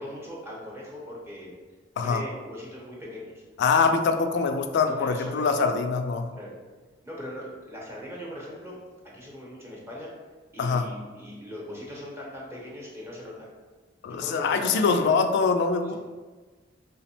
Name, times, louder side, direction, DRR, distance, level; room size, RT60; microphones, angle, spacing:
voice 1, 0.0-1.5 2.0-3.4 4.7-5.6 6.4-6.5 7.0-8.8 9.1-10.1 10.5-13.5 14.1-15.1 15.8-16.0, equal, 15° right, -5 dB, 0.9 m, -40 dB
voice 2, 3.6-6.3 10.6-10.9 14.0-16.0, left 4 dB, 60° left, 6 dB, 0.3 m, -24 dB
3.3 x 2.0 x 4.2 m, 1.3 s
head